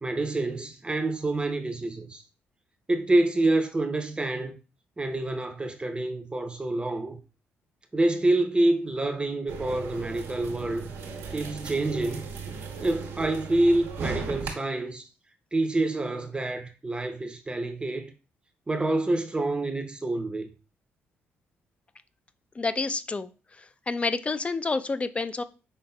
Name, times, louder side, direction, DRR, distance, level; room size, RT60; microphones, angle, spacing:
voice 1, 0.0-2.2 2.9-4.5 5.0-7.2 7.9-10.9 11.3-12.3 12.8-15.1 15.5-18.1 18.7-20.5, right 2 dB, 20° right, 0.6 m, -27 dB
sound 1, 9.5-14.5, right 5 dB, 90° right, 1.1 m, -36 dB
voice 2, 22.6-23.3 23.9-25.4, left 3 dB, 25° left, 0.4 m, -28 dB
5.6 x 3.5 x 2.2 m
cardioid pair, 70°, 5 cm